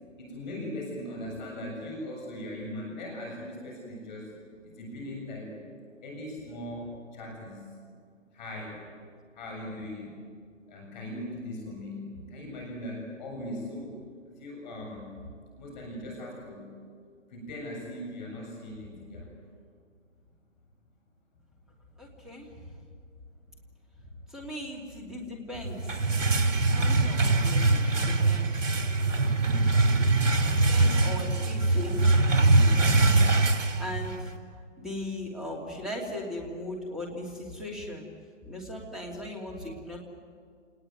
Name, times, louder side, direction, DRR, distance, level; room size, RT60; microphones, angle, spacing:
voice 1, 0.2-4.3 4.7-5.6 6.0-7.7 8.3-8.9 9.3-10.1 10.7-14.0 14.4-15.3 15.6-16.7 17.3-19.3, left 1 dB, 35° left, 0 dB, 7.2 m, -39 dB
voice 2, 22.0-22.5 24.3-26.1 26.6-28.5 29.8-30.1 30.4-33.0 33.8-34.3 34.8-38.1 38.4-40.0, left 1 dB, ahead, -2 dB, 2.9 m, -38 dB
sound 1, 25.6-34.3, right 2 dB, 70° right, 2.8 m, -23 dB
28.0 x 19.5 x 9.4 m, 2.1 s
hypercardioid pair, 150°, 38 cm